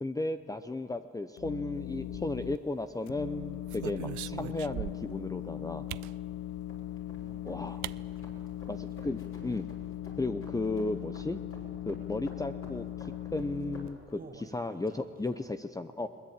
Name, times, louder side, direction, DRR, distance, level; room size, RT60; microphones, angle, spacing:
voice 1, 0.0-5.9 7.5-7.8 8.7-9.6 10.2-11.4 11.9-12.8 13.3-14.0 14.5-16.1, left 2 dB, 10° left, 10 dB, 0.7 m, -34 dB
sound 1, 1.4-2.6 3.1-13.9, left 13 dB, 70° left, 0.5 m, -39 dB
sound 2, 2.0-2.7 3.2-5.2 5.9-6.2 7.3-7.4 7.8-8.0 8.3-8.4 8.7-9.1, right 16 dB, 70° right, 0.5 m, -41 dB
sound 3, 3.2-14.1, left 1 dB, 45° left, 6.1 m, -54 dB
voice 2, 7.2-9.1 14.1-15.5, right 3 dB, 30° right, 7 dB, 2.0 m, -54 dB
21.5 x 20.0 x 8.8 m, 2.4 s
cardioid pair, 90°, 30 cm